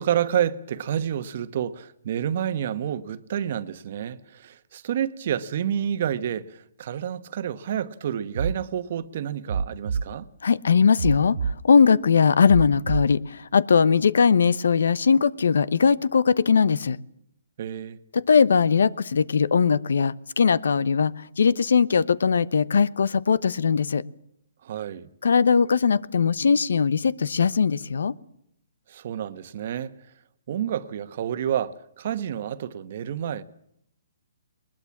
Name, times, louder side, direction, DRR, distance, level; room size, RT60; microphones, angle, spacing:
voice 1, 0.0-10.3 17.6-18.0 24.6-25.1 28.9-29.9 30.5-33.4, right 9 dB, 50° right, 1.3 m, -29 dB
sound 1, 8.3-8.6 9.5-10.1 11.0-11.6 12.5-13.1, right 6 dB, 85° right, 2.3 m, -26 dB
voice 2, 10.4-11.4 11.6-17.0 18.1-24.0 25.2-28.1, left 6 dB, 80° left, 1.0 m, -20 dB
21.0 x 21.0 x 7.3 m
hypercardioid pair, 160°, 0 cm